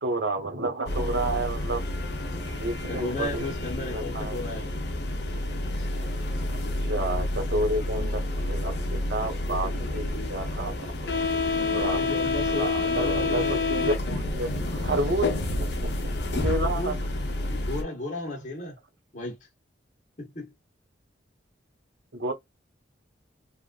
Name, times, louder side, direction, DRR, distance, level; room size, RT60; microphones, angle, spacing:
voice 1, 0.0-1.8 2.6-3.5 3.9-4.4 5.4-5.5 5.9-6.1 6.5-10.8 11.6-12.1 12.5-13.4 13.7-16.9 22.1-22.3, right 2 dB, 70° right, 1.2 m, -30 dB
sound 1, 0.9-17.8, left 2 dB, 60° left, 0.8 m, -29 dB
voice 2, 2.9-4.7 11.7-13.6 16.6-17.0 17.5-18.7 19.1-19.4 20.2-20.5, left 2 dB, 35° left, 1.2 m, -34 dB
3.6 x 2.4 x 2.2 m
head